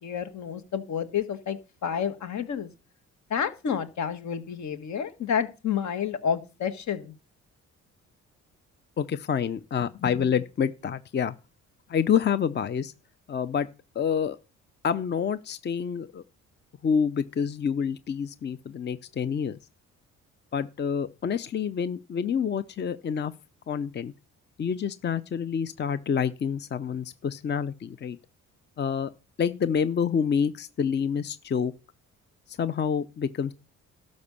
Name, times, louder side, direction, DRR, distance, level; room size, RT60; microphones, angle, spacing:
voice 1, 0.0-2.7 3.3-7.1, left 7 dB, 65° left, 11 dB, 1.6 m, -30 dB
voice 2, 9.0-11.3 11.9-12.9 13.3-13.7 13.9-14.4 14.8-16.2 16.8-19.6 20.5-23.3 23.7-24.1 24.6-28.2 28.8-29.1 29.4-31.7 32.5-33.5, left 7 dB, 35° left, 15 dB, 0.6 m, -27 dB
12.5 x 5.2 x 7.0 m, 0.31 s
cardioid pair, 90°, 30 cm